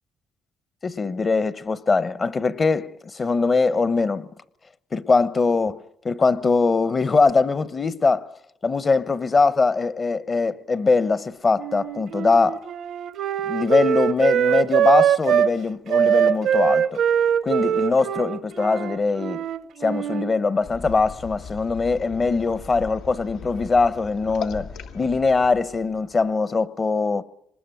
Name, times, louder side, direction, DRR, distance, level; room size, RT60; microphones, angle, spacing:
voice 1, 0.8-4.3 4.9-5.8 6.0-8.3 8.6-12.6 13.5-17.0 17.4-19.4 19.8-24.7 24.9-27.2, left 4 dB, 35° left, 0.9 m, -22 dB
Wind instrument woodwind instrument, 11.6-15.5 15.9-20.3, right 9 dB, 70° right, 0.9 m, -22 dB
sound 1, 20.6-26.4, left 5 dB, 90° left, 2.0 m, -38 dB
25.0 x 20.0 x 9.1 m
cardioid pair, 90°, 0 cm